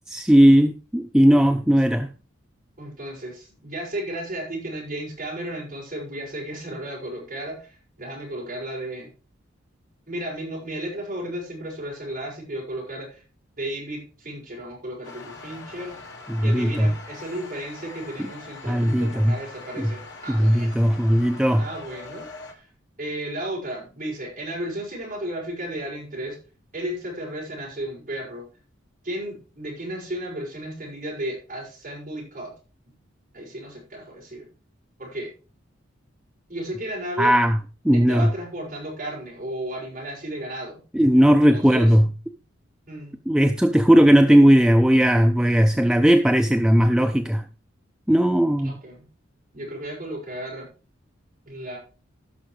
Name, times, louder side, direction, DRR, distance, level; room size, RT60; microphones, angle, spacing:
voice 1, 0.1-2.1 16.3-16.9 18.2-18.3 18.7-19.3 19.8-19.9 20.3-21.7 37.2-37.6 37.8-38.3 40.9-42.1 43.3-47.4 48.1-48.8, equal, 5° right, 0.4 m, -17 dB
voice 2, 2.8-9.1 10.1-13.2 13.6-16.0 16.4-20.7 21.6-22.7 23.0-26.4 26.7-28.5 29.0-32.5 33.3-34.5 35.0-35.3 36.5-37.3 37.9-40.8 41.5-42.0 42.9-43.2 48.6-49.1 49.5-50.7 51.5-51.8, right 1 dB, 40° right, 6.0 m, -34 dB
sound 1, 15.0-22.5, left 3 dB, 60° left, 1.9 m, -42 dB
16.5 x 6.3 x 3.2 m
head